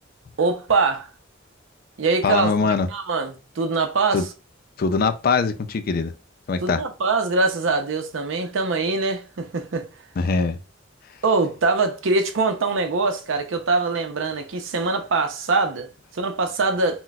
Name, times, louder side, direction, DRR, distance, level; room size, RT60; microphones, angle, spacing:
voice 1, 0.4-1.1 2.0-2.5 2.9-4.2 6.6-9.9 11.2-17.0, right 3 dB, 85° right, 0.6 m, -23 dB
voice 2, 2.2-2.9 4.1-4.3 4.8-6.1 6.5-6.8 10.2-10.6, left 4 dB, 50° left, 0.4 m, -22 dB
3.9 x 2.2 x 2.2 m
head